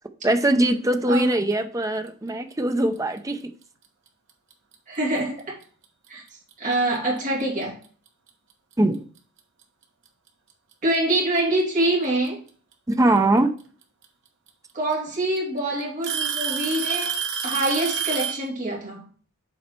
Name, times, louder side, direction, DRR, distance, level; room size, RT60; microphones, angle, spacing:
voice 1, 0.2-3.5 8.8-9.0 12.9-13.5, right 1 dB, 15° right, 0.5 m, -21 dB
Alarm / Tick-tock, 4.5-4.7 5.6-5.7 6.5-6.6 8.3-8.4 9.6-9.7 10.9-11.4 13.2-13.3 14.5-14.6 14.9-15.4 16.0-18.5, right 7 dB, 55° right, 1.0 m, -28 dB
voice 2, 4.9-5.6 6.1-6.2 6.6-7.8 10.8-12.4 14.7-17.1 17.4-19.0, right 1 dB, 35° right, 2.9 m, -25 dB
7.4 x 4.2 x 4.3 m
head